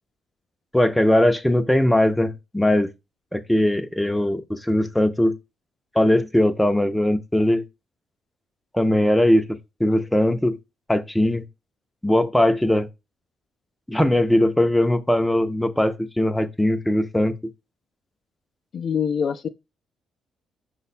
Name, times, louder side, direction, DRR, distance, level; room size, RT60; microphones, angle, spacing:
voice 1, 0.7-2.9 3.3-5.4 6.0-7.6 8.7-9.5 9.8-10.6 10.9-11.4 12.0-12.9 13.9-17.3, left 1 dB, 5° left, 0.5 m, -20 dB
voice 2, 18.7-19.5, left 7 dB, 55° left, 0.3 m, -24 dB
5.1 x 2.2 x 4.1 m
cardioid pair, 90°, 0 cm